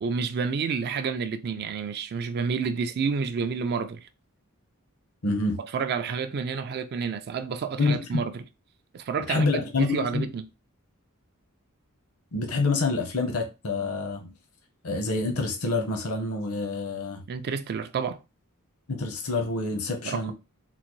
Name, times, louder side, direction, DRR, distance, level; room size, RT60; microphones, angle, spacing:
voice 1, 0.0-4.1 5.6-8.4 8.9-10.4 17.3-18.2 20.0-20.3, right 5 dB, 45° right, 0.3 m, -29 dB
voice 2, 5.2-5.6 7.8-8.2 9.3-10.3 12.3-14.3 14.8-17.2 18.9-20.3, left 3 dB, 70° left, 0.7 m, -27 dB
3.8 x 2.1 x 3.0 m
head